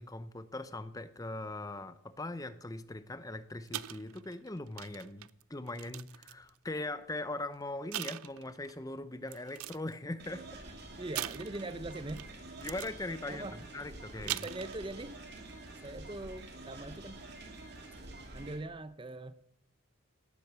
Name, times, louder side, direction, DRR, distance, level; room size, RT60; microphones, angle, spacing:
voice 1, 0.0-10.4 12.6-14.4, left 2 dB, 15° left, 13 dB, 0.6 m, -40 dB
sound 1, 3.7-6.6 7.3-7.5 7.9-8.8 9.3-9.9 11.2-12.3 12.6-13.0 14.0-15.0 15.4-15.6, right 13 dB, 85° right, 0.5 m, -41 dB
sound 2, 10.2-18.6, right 2 dB, 50° right, 2.5 m, -48 dB
voice 2, 11.0-12.3 13.2-13.7 14.2-15.2 15.8-17.2 18.3-19.3, right 2 dB, 25° right, 13 dB, 0.6 m, -42 dB
17.5 x 10.5 x 6.8 m, 0.74 s
head